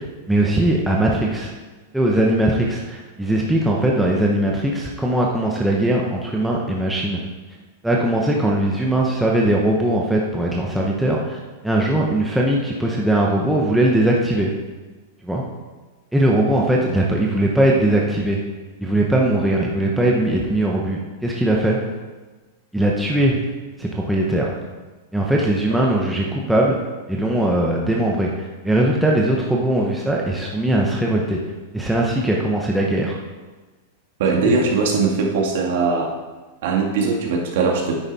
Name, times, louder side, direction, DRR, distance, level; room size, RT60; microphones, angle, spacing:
voice 1, 0.0-1.5 1.9-7.2 7.8-11.4 11.6-14.5 15.2-15.4 16.1-18.4 18.8-21.8 22.7-23.4 23.8-24.5 25.1-26.8 27.1-31.4 31.7-33.2 34.5-34.6, right 1 dB, ahead, -3 dB, 0.8 m, -20 dB
voice 2, 34.2-36.1 36.6-38.0, right 4 dB, 55° right, 0 dB, 2.0 m, -20 dB
9.8 x 9.6 x 4.1 m, 1.3 s
supercardioid pair, 175°, 0 cm